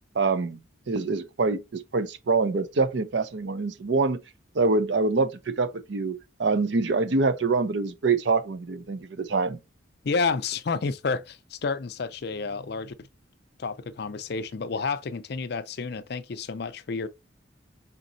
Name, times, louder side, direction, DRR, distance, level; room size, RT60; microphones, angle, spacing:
voice 1, 0.2-0.6 0.9-4.2 4.6-5.3 5.6-9.6, right 3 dB, 60° right, 0.5 m, -25 dB
voice 2, 10.0-12.9 13.6-17.1, left 4 dB, 55° left, 0.5 m, -30 dB
5.1 x 4.0 x 2.6 m
head